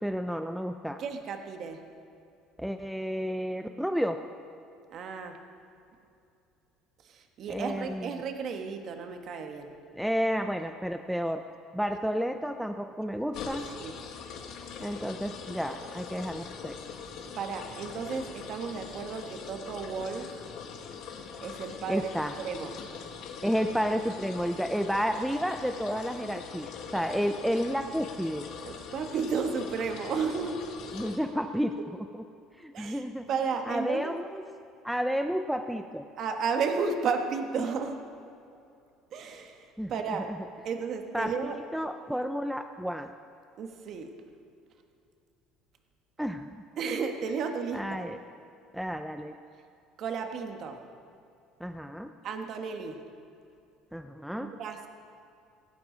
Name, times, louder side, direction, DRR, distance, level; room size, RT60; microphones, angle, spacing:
voice 1, 0.0-1.0 2.6-4.2 7.5-8.1 9.9-11.4 11.7-13.7 14.8-16.8 21.9-22.3 23.4-28.5 30.9-31.8 32.1-32.2 32.6-33.3 33.7-34.4 34.8-36.1 39.8-40.3 41.1-43.1 46.2-46.6 47.7-48.2 48.7-49.3 51.6-52.1 53.9-54.5, equal, ahead, 7 dB, 0.4 m, -31 dB
voice 2, 1.0-1.8 4.9-5.4 7.0-9.8 13.8-14.0 17.4-20.4 21.4-22.1 22.4-22.7 28.6-30.7 32.7-34.2 36.2-38.0 39.1-40.3 40.6-41.6 43.6-44.1 46.8-48.0 50.0-50.8 52.2-53.0 54.4-54.9, right 5 dB, 45° right, 5 dB, 1.3 m, -33 dB
sound 1, 13.3-31.2, left 6 dB, 55° left, 1.6 m, -42 dB
17.0 x 15.5 x 3.9 m, 2.6 s
cardioid pair, 145°, 0 cm